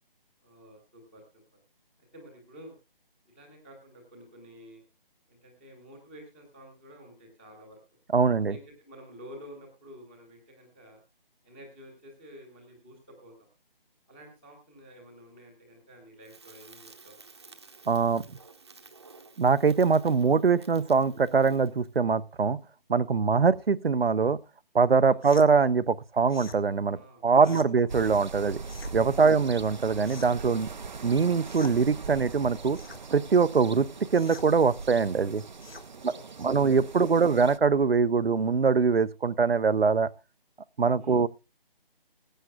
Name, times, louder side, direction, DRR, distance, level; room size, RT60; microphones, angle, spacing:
voice 1, 0.4-1.2 2.1-2.7 3.2-4.8 5.3-7.8 8.5-11.0 11.4-13.3 14.1-17.2 25.1-25.5 26.9-27.6 29.1-29.5 35.9-36.8 37.1-37.3 41.0-41.3, equal, 5° left, 1.2 m, -50 dB
voice 2, 8.1-8.6 17.9-18.2 19.4-22.6 22.9-24.4 24.7-27.0 27.2-28.6 28.9-30.7 31.0-32.8 33.1-33.9 34.1-35.4 36.0-36.1 36.4-40.1 40.8-41.3, right 5 dB, 80° right, 0.9 m, -23 dB
Crackle, 16.2-21.9, right 4 dB, 30° right, 1.1 m, -52 dB
sound 1, 25.2-25.5 26.3-26.6 27.4-27.7 28.6-29.0 30.0-30.5 31.4-31.8 32.7-33.0 34.1-34.5 35.6-35.9, left 3 dB, 85° left, 1.9 m, -45 dB
sound 2, 27.9-37.6, right 4 dB, 50° right, 0.7 m, -41 dB
21.0 x 9.2 x 2.3 m
figure-of-eight pair, 170°, 29 cm